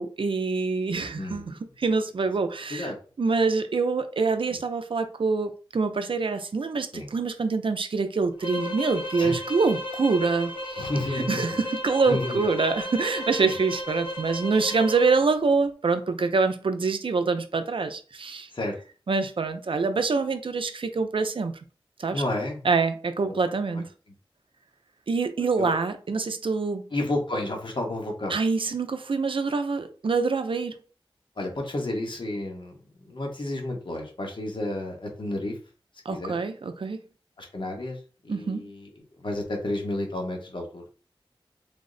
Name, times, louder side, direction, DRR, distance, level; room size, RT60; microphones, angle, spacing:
voice 1, 0.0-18.5 19.1-21.5 22.0-22.2 22.6-23.9 25.1-26.8 28.3-30.7 36.1-37.0 38.3-38.6, right 4 dB, 70° right, 0.5 m, -25 dB
voice 2, 1.2-1.6 2.7-3.0 4.5-4.6 6.9-7.1 9.2-9.3 10.8-11.4 12.1-12.4 13.4-13.6 18.5-18.7 22.1-22.6 23.2-23.4 25.6-25.7 26.9-28.4 31.4-32.7 33.0-35.5 36.1-36.3 37.4-38.0 38.2-38.9 39.2-40.8, left 1 dB, 65° left, 1.0 m, -31 dB
sound 1, 8.4-15.2, left 1 dB, 85° left, 1.9 m, -34 dB
3.5 x 2.1 x 3.8 m
wide cardioid pair, 60°, 9 cm